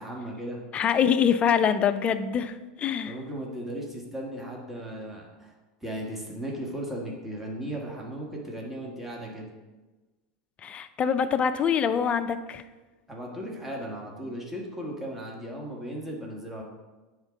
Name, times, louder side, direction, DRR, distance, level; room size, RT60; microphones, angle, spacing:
voice 1, 0.0-0.6 3.1-5.5 5.8-9.5 13.1-16.6, right 1 dB, 5° right, -2 dB, 1.6 m, -36 dB
voice 2, 0.7-3.1 10.6-12.6, left 7 dB, 30° left, 10 dB, 0.5 m, -24 dB
8.9 x 3.7 x 5.1 m, 1.2 s
hypercardioid pair, 110°, 4 cm